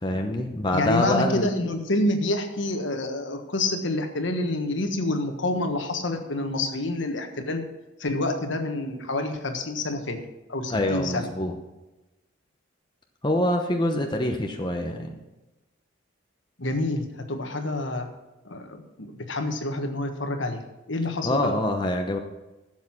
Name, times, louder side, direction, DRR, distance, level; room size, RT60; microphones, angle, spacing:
voice 1, 0.0-1.5 10.7-11.6 13.2-15.2 21.2-22.2, left 1 dB, 20° left, 3 dB, 0.9 m, -25 dB
voice 2, 0.7-7.6 8.0-10.2 10.5-11.3 16.6-18.1 18.4-20.6 20.9-21.5, left 2 dB, 65° left, 6 dB, 1.4 m, -28 dB
12.5 x 7.6 x 6.0 m, 1.1 s
head